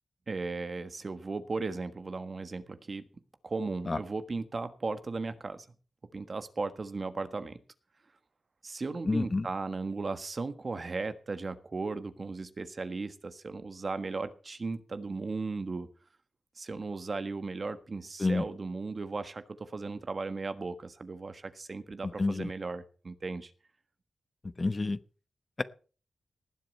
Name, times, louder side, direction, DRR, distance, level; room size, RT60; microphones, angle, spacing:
voice 1, 0.3-3.1 3.4-5.7 6.1-7.6 8.6-15.9 16.5-23.5, right 3 dB, 50° right, 11 dB, 1.4 m, -36 dB
voice 2, 9.0-9.5 18.2-18.4 22.2-22.5 24.6-25.0, left 3 dB, 40° left, 14 dB, 1.0 m, -28 dB
18.5 x 7.8 x 5.5 m, 0.39 s
cardioid pair, 55°, 0 cm